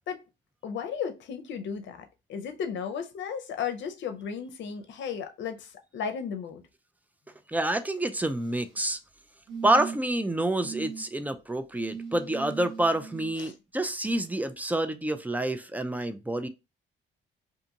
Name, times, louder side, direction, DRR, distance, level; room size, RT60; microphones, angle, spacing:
voice 1, 0.6-6.6 13.4-13.5, left 7 dB, 70° left, 0.6 m, -35 dB
voice 2, 7.5-9.0 9.6-16.5, right 1 dB, 10° right, 0.3 m, -28 dB
sound 1, 8.2-8.8 9.5-10.2 10.6-11.0 11.7-13.3 14.6-14.7, right 5 dB, 85° right, 1.1 m, -39 dB
2.6 x 2.5 x 2.8 m
cardioid pair, 90°, 20 cm